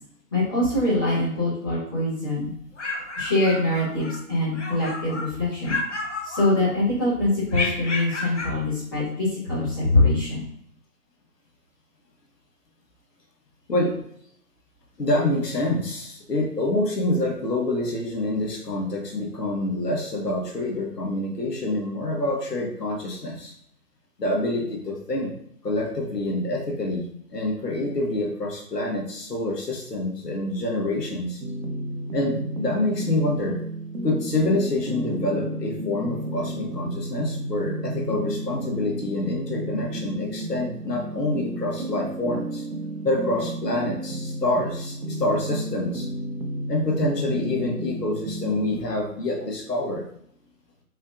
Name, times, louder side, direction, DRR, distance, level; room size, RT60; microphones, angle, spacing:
voice 1, 0.3-2.5 3.2-5.8 6.2-10.4, left 2 dB, 15° left, -12 dB, 1.3 m, -23 dB
sound 1, 2.5-4.2 4.5-5.3 5.6-6.9 7.5-8.6, left 3 dB, 50° left, 0.7 m, -31 dB
voice 2, 15.0-23.5 24.2-25.3 25.6-31.4 32.1-33.6 34.0-42.6 43.0-46.1 46.7-50.1, left 1 dB, 80° left, 0 dB, 1.5 m, -26 dB
Lost in the Maze, 31.4-48.8, right 1 dB, 75° right, 0.8 m, -32 dB
4.4 x 3.3 x 2.5 m, 0.70 s
figure-of-eight pair, 165°, 48 cm